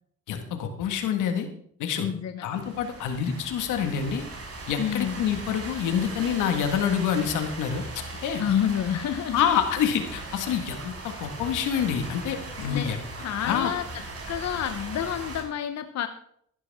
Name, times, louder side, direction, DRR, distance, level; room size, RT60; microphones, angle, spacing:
voice 1, 0.3-1.5 1.8-2.1 2.4-4.2 4.7-8.4 9.3-13.0 13.4-13.7, left 8 dB, 90° left, 6 dB, 1.8 m, -27 dB
voice 2, 2.0-2.4 4.8-5.2 8.4-9.4 12.6-12.9 13.2-13.8 14.3-16.1, left 9 dB, 60° left, 9 dB, 0.9 m, -28 dB
sound 1, 2.5-15.4, right 2 dB, 50° right, 5.3 m, -39 dB
14.5 x 12.0 x 3.6 m, 0.67 s
cardioid pair, 90°, 30 cm